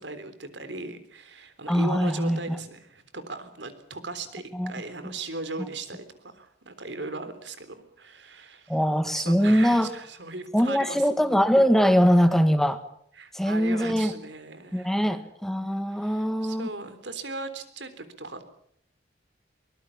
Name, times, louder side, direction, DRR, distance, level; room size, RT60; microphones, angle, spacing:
voice 1, 0.0-8.8 9.1-11.1 13.2-15.0 15.9-18.4, right 3 dB, 90° right, 11 dB, 3.7 m, -38 dB
voice 2, 1.7-2.6 4.5-4.7 8.7-9.9 10.5-12.8 13.3-14.1 14.7-16.7, equal, ahead, 10 dB, 1.4 m, -22 dB
24.0 x 21.0 x 7.3 m, 0.67 s
head